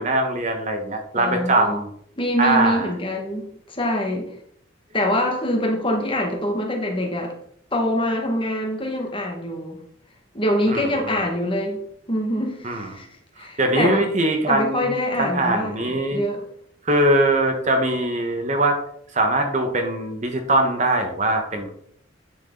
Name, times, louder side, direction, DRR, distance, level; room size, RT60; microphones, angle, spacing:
voice 1, 0.0-1.9 2.4-2.9 10.7-11.2 12.6-12.9 13.6-14.9 15.2-16.2 16.9-18.8 19.1-21.7, right 1 dB, 35° right, 4 dB, 1.2 m, -21 dB
voice 2, 1.2-1.8 2.2-4.3 4.9-7.3 7.7-9.8 10.3-13.1 13.4-14.0 14.5-16.4, left 1 dB, 25° left, 1 dB, 1.8 m, -25 dB
9.6 x 6.5 x 3.9 m, 0.67 s
head